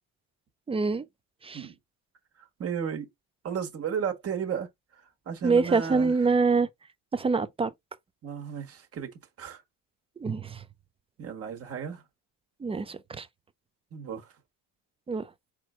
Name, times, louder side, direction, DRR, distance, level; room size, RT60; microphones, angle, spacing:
voice 1, 0.7-1.0 1.4-1.6 5.4-6.7 7.1-7.7 10.2-10.6 12.6-13.3 15.1-15.2, right 4 dB, 15° right, 0.3 m, -25 dB
voice 2, 2.4-3.1 3.4-6.1 8.2-9.6 11.2-12.0 13.9-14.3, right 7 dB, 35° right, 1.5 m, -34 dB
4.3 x 2.5 x 4.3 m
cardioid pair, 125°, 40 cm